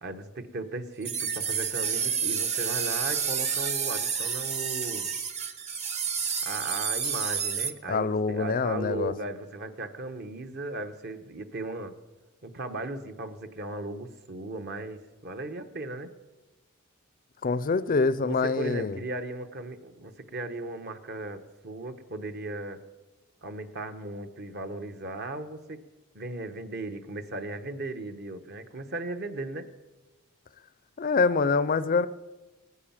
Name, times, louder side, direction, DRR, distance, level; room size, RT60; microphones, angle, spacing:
voice 1, 0.0-5.1 6.4-11.9 12.4-16.1 18.2-22.8 23.4-25.8 26.1-29.7, right 2 dB, 50° right, 7 dB, 1.1 m, -37 dB
sound 1, 1.0-7.7, right 6 dB, 30° right, 0.8 m, -30 dB
voice 2, 7.9-9.1 17.4-19.0 31.0-32.1, left 4 dB, 40° left, 15 dB, 0.5 m, -25 dB
19.0 x 9.8 x 7.3 m, 1.2 s
head